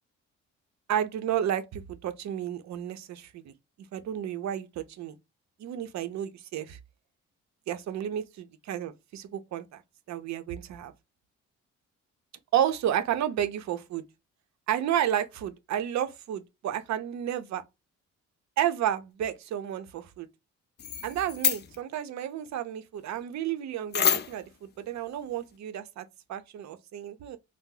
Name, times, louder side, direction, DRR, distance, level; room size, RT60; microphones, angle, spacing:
voice 1, 0.9-3.5 3.9-5.2 5.6-6.8 7.7-9.8 10.1-10.9 12.5-14.0 14.7-17.6 18.6-20.3 21.0-27.4, right 10 dB, 65° right, 0.6 m, -31 dB
sound 1, 20.8-21.8 23.9-24.5, left 8 dB, 35° left, 0.4 m, -27 dB
2.7 x 2.0 x 3.8 m
cardioid pair, 90°, 30 cm